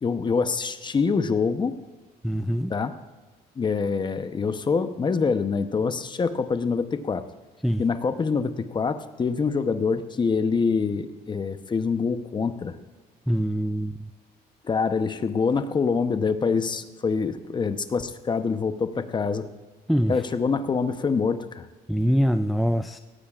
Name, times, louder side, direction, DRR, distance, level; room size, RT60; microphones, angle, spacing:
voice 1, 0.0-1.7 2.7-3.0 3.6-7.2 7.8-12.8 14.6-19.5 20.1-21.7, left 5 dB, 25° left, 10 dB, 0.8 m, -25 dB
voice 2, 2.2-2.7 7.6-7.8 13.3-14.1 19.9-20.2 21.9-23.0, equal, ahead, 9 dB, 0.3 m, -24 dB
18.0 x 14.5 x 2.4 m, 1.3 s
cardioid pair, 110°, 17 cm